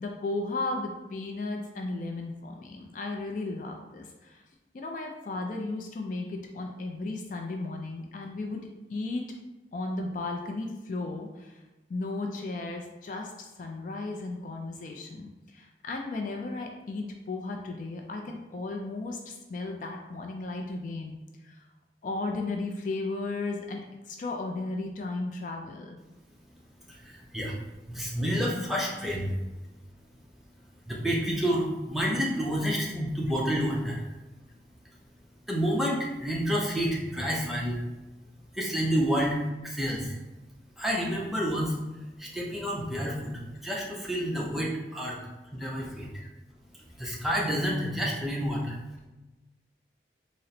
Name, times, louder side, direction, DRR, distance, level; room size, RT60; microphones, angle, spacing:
voice 1, 0.0-4.4 4.7-9.2 9.7-11.6 11.9-21.1 21.4-21.6 22.0-26.0 46.2-46.3 48.7-48.8, left 2 dB, 45° left, 2 dB, 0.3 m, -35 dB
voice 2, 26.9-27.6 27.9-29.3 30.9-34.0 35.5-37.8 38.5-39.4 39.6-40.1 40.8-41.8 42.2-43.3 43.6-45.2 45.5-46.1 47.0-48.7, equal, ahead, -4 dB, 0.5 m, -29 dB
3.9 x 2.0 x 4.1 m, 1.1 s
head